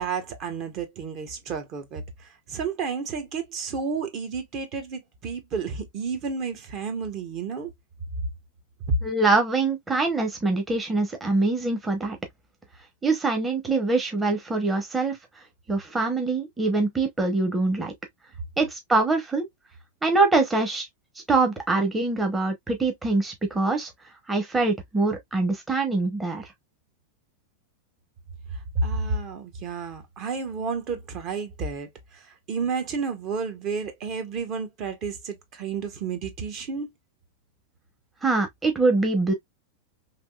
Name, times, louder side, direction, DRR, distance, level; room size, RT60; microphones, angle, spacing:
voice 1, 0.0-2.0 2.5-7.7 28.7-36.9, right 5 dB, 45° right, 1.0 m, -31 dB
voice 2, 9.0-12.2 13.0-15.2 15.7-17.9 18.6-19.5 20.0-20.9 21.3-23.9 24.3-26.5 38.2-39.3, right 3 dB, 15° right, 0.8 m, -24 dB
3.4 x 2.7 x 2.3 m
hypercardioid pair, 115°, 0 cm